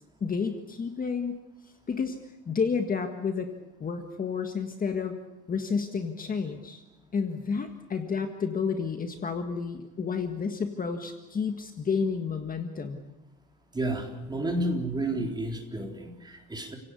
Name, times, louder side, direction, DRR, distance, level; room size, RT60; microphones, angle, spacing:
voice 1, 0.2-1.3 1.9-2.2 2.5-3.5 3.8-5.2 5.5-6.8 7.1-13.0, left 5 dB, 30° left, 5 dB, 1.7 m, -30 dB
voice 2, 13.7-16.8, right 1 dB, 15° right, 2 dB, 3.9 m, -31 dB
29.5 x 17.5 x 8.4 m, 1.0 s
cardioid pair, 150°, 30 cm